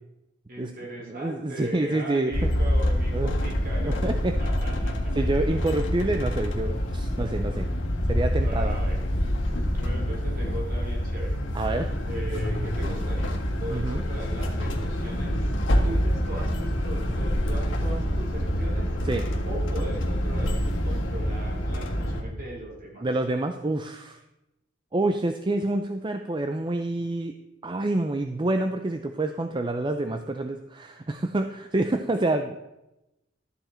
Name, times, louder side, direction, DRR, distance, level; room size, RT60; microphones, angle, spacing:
voice 1, 0.5-5.3 8.4-9.2 9.8-11.4 12.0-15.6 15.8-18.9 19.5-20.6 20.8-23.1, right 1 dB, 50° right, -1 dB, 3.3 m, -38 dB
voice 2, 1.0-2.5 3.1-3.3 3.8-4.4 5.1-7.7 8.1-8.8 11.5-11.9 13.7-14.0 19.0-19.3 23.0-24.2 24.9-27.3 27.6-32.6, right 2 dB, 25° right, 7 dB, 0.5 m, -27 dB
sound 1, 2.3-22.2, equal, 75° left, 1.8 m, -26 dB
12.5 x 7.9 x 4.4 m, 0.93 s
head